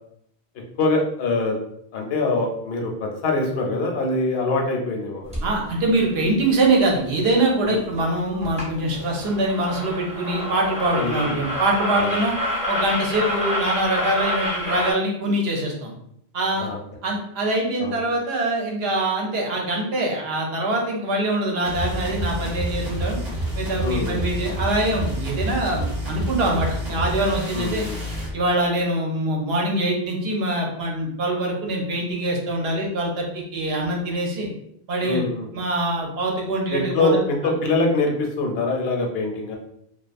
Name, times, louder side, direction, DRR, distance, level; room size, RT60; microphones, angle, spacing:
voice 1, 0.8-1.6 1.9-5.5 7.6-7.8 10.9-11.4 12.0-12.1 16.6-16.8 17.8-18.0 23.8-24.2 26.4-26.5 27.5-28.0 35.0-35.5 36.7-39.6, left 2 dB, 75° left, 1 dB, 0.8 m, -24 dB
sound 1, 5.3-5.5 8.0-8.1 8.4-8.7 8.9-14.9, left 1 dB, 10° right, 0.6 m, -27 dB
voice 2, 5.4-12.3 12.7-15.9 16.3-16.7 17.0-23.2 23.5-27.8 28.3-34.5 34.9-35.2 35.5-37.5, right 1 dB, 75° right, -1 dB, 0.9 m, -24 dB
sound 2, 21.6-28.3, right 1 dB, 40° right, 0.8 m, -28 dB
2.4 x 2.2 x 2.5 m, 0.73 s
omnidirectional pair, 1.1 m